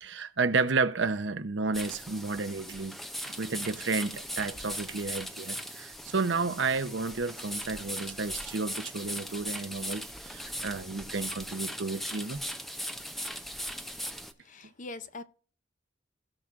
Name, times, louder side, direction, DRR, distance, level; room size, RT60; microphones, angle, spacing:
voice 1, 0.0-3.0 3.4-12.4, right 4 dB, 65° right, 0.8 m, -31 dB
sound 1, 1.7-14.3, equal, ahead, 0.6 m, -39 dB
voice 2, 14.4-15.2, left 3 dB, 40° left, 0.6 m, -42 dB
17.0 x 6.0 x 2.5 m
head